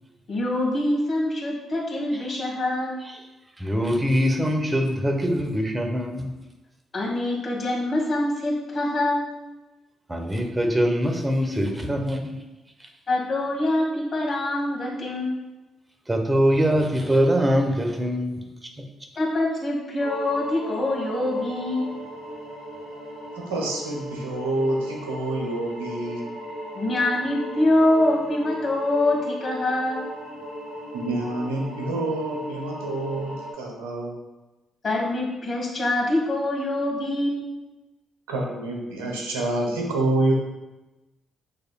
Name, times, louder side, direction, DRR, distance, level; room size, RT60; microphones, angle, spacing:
voice 1, 0.3-3.0 6.9-9.3 13.1-15.4 19.1-22.0 26.7-30.0 34.8-37.7, left 1 dB, 45° left, -3 dB, 1.4 m, -24 dB
voice 2, 3.6-6.4 10.1-12.4 16.1-18.5, equal, 20° right, 3 dB, 0.9 m, -23 dB
sound 1, 20.0-33.5, equal, 80° left, 1.2 m, -37 dB
voice 3, 23.3-26.3 30.9-34.1 38.3-40.3, right 2 dB, 80° right, 0 dB, 0.8 m, -27 dB
6.5 x 3.2 x 2.3 m, 1.1 s
hypercardioid pair, 45°, 0 cm